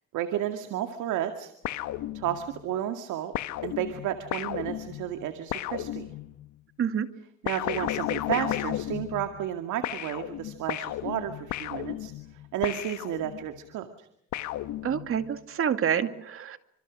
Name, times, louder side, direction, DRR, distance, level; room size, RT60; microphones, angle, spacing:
voice 1, 0.1-1.5 2.1-3.3 3.6-6.1 7.4-12.1 12.5-14.1, right 11 dB, 75° right, 7 dB, 2.3 m, -32 dB
sound 1, 1.6-2.6 3.3-6.5 7.5-9.6 9.8-13.6 14.3-15.3, left 14 dB, 70° left, 1.3 m, -34 dB
voice 2, 14.8-16.6, right 8 dB, 45° right, 8 dB, 2.3 m, -27 dB
30.0 x 26.5 x 6.3 m, 0.71 s
cardioid pair, 105°, 30 cm